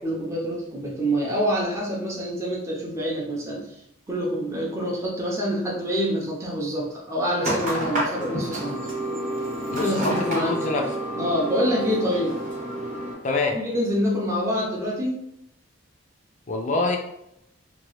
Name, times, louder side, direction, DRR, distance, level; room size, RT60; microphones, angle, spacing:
voice 1, 0.0-3.8 4.1-8.8 9.7-10.6 11.1-12.4 13.5-15.2, equal, 15° right, -4 dB, 0.6 m, -26 dB
sound 1, 7.4-13.1, right 1 dB, 40° right, 0.9 m, -29 dB
voice 2, 9.7-10.9 13.2-13.6 16.5-17.0, left 2 dB, 35° left, 3 dB, 0.4 m, -25 dB
2.9 x 2.2 x 3.0 m, 0.78 s
head